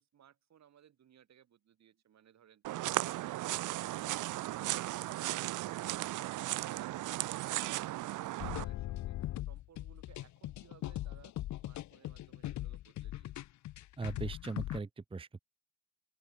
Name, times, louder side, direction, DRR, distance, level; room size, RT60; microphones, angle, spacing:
voice 1, 0.0-2.6 9.5-11.3 11.6-13.4, right 9 dB, 60° right, 6.0 m, -62 dB
sound 1, 2.6-8.6, right 16 dB, 85° right, 1.1 m, -36 dB
sound 2, 8.4-14.8, left 14 dB, 70° left, 0.7 m, -40 dB
voice 2, 14.0-15.4, right 4 dB, 20° right, 0.8 m, -39 dB
open air
cardioid pair, 90°, 30 cm